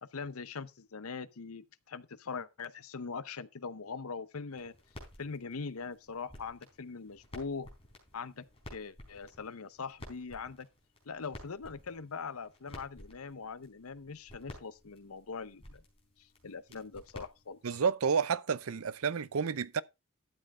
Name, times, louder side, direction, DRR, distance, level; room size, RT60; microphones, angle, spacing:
voice 1, 0.0-4.7 5.2-7.7 8.1-10.7 11.0-15.8 16.2-17.8, left 5 dB, 80° left, 0.8 m, -42 dB
sound 1, 4.5-17.9, left 1 dB, 25° left, 4.3 m, -53 dB
voice 2, 17.6-19.8, right 6 dB, 75° right, 0.6 m, -30 dB
12.5 x 7.6 x 3.6 m
head